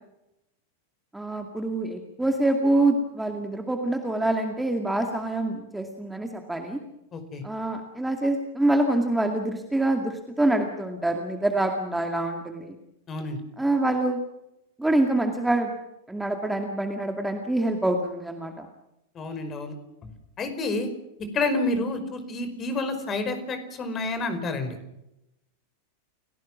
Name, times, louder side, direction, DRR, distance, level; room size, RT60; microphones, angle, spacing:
voice 1, 1.1-6.8 7.4-12.7 13.6-14.2 14.8-15.7 16.1-18.7, right 1 dB, 5° right, 4 dB, 2.3 m, -25 dB
voice 2, 7.1-7.4 13.1-13.4 19.1-19.7 20.0-20.1 20.4-20.9 21.3-24.8, left 2 dB, 25° left, 9 dB, 5.0 m, -29 dB
30.0 x 17.5 x 6.2 m, 0.86 s
figure-of-eight pair, 90°, 0 cm